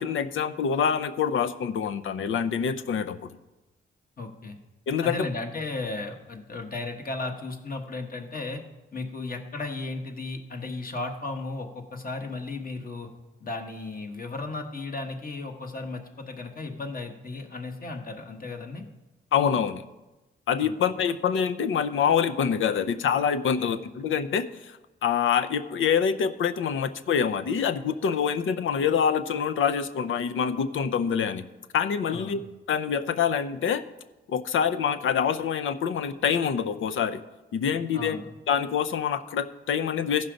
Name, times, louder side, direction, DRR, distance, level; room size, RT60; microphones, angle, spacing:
voice 1, 0.0-3.2 4.9-5.3 19.3-19.9 20.5-31.5 31.7-32.4 32.7-33.8 34.3-37.2 37.5-38.2 38.5-40.3, left 7 dB, 70° left, 10 dB, 0.6 m, -26 dB
voice 2, 4.2-4.6 5.0-8.6 8.9-13.1 13.4-18.8 20.6-20.7 32.1-32.4 37.9-38.3, left 3 dB, 45° left, 4 dB, 1.4 m, -35 dB
14.5 x 5.5 x 5.1 m, 1.1 s
cardioid pair, 85°, 21 cm